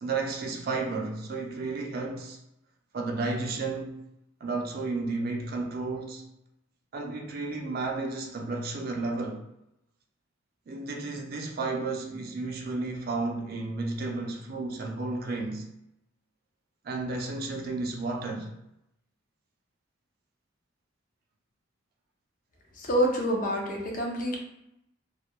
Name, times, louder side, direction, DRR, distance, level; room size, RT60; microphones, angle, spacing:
voice 1, 0.0-2.4 2.9-4.1 4.4-6.3 6.9-9.4 10.7-15.7 16.8-18.5, right 3 dB, 50° right, 0.4 m, -32 dB
voice 2, 22.8-24.4, equal, 40° left, 0.5 m, -27 dB
2.3 x 2.1 x 2.9 m
head